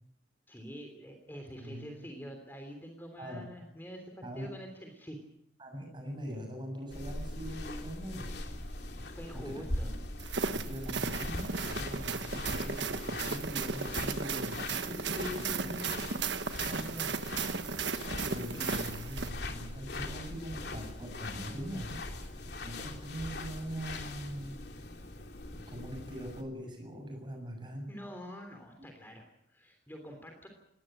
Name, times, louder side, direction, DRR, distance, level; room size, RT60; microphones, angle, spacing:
voice 1, 0.5-5.2 9.1-10.0 15.3-16.1 27.9-30.5, equal, 10° left, 4 dB, 3.2 m, -46 dB
voice 2, 1.6-1.9 3.2-3.4 4.2-4.5 5.6-8.3 9.5-9.9 10.5-16.0 16.7-17.1 18.2-22.0 22.6-24.6 25.5-27.9 28.8-28.9, equal, 25° right, 4 dB, 7.2 m, -42 dB
sound 1, 6.9-26.4, left 2 dB, 65° left, 3.1 m, -41 dB
sound 2, 10.2-19.3, right 5 dB, 75° right, 1.3 m, -35 dB
20.0 x 18.5 x 9.0 m, 0.77 s
head